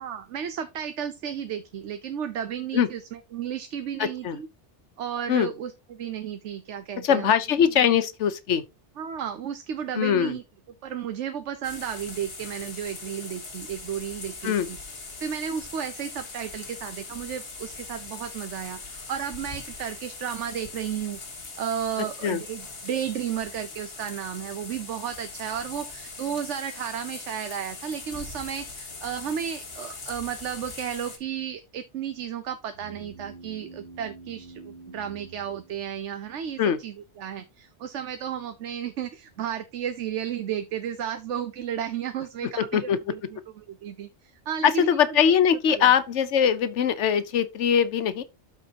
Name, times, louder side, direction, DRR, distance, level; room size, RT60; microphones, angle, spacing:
voice 1, 0.0-4.5 5.0-7.3 7.6-7.9 9.0-10.4 10.8-14.8 15.2-21.2 21.6-45.4 45.7-45.9, right 9 dB, 80° right, 1.0 m, -33 dB
voice 2, 4.0-4.4 5.3-5.5 7.0-8.6 10.0-10.4 14.4-14.7 22.2-22.4 36.6-36.8 42.6-43.0 44.6-48.2, left 8 dB, 90° left, 1.1 m, -22 dB
sound 1, 11.6-31.2, left 3 dB, 55° left, 1.9 m, -41 dB
sound 2, 32.7-36.4, right 3 dB, 10° left, 4.8 m, -47 dB
13.0 x 4.4 x 2.8 m
omnidirectional pair, 1.2 m